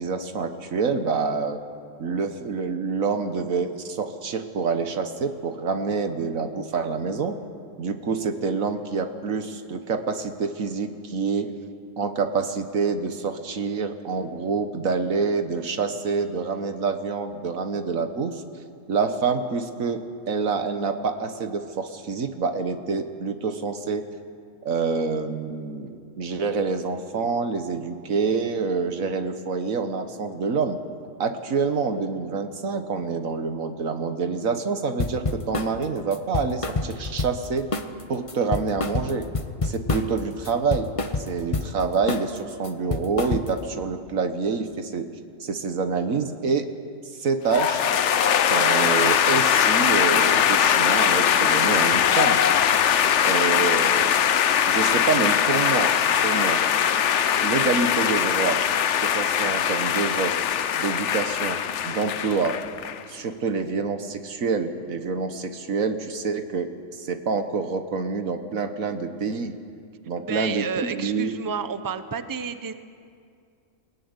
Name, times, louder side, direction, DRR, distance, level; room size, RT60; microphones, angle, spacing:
voice 1, 0.0-1.6 2.0-7.4 7.8-11.5 12.0-18.4 18.9-24.0 24.7-30.8 31.2-37.7 38.1-39.3 39.6-40.9 41.3-45.1 45.4-46.7 47.2-47.9 48.3-52.7 53.2-54.2 54.7-55.9 56.2-56.6 57.4-58.6 59.0-60.3 60.8-62.6 63.1-69.6 70.1-71.3, right 4 dB, 80° right, 8 dB, 1.7 m, -27 dB
sound 1, 35.0-35.7 36.1-37.5 37.7-38.0 38.3-40.2 40.4-41.7 42.1-42.4 42.6-43.7, left 3 dB, 30° left, 0.9 m, -27 dB
sound 2, 47.5-63.0, left 9 dB, 65° left, 1.0 m, -21 dB
voice 2, 70.2-72.7, right 6 dB, 20° right, 10 dB, 0.7 m, -31 dB
22.0 x 17.0 x 9.8 m, 2.3 s
omnidirectional pair, 1.4 m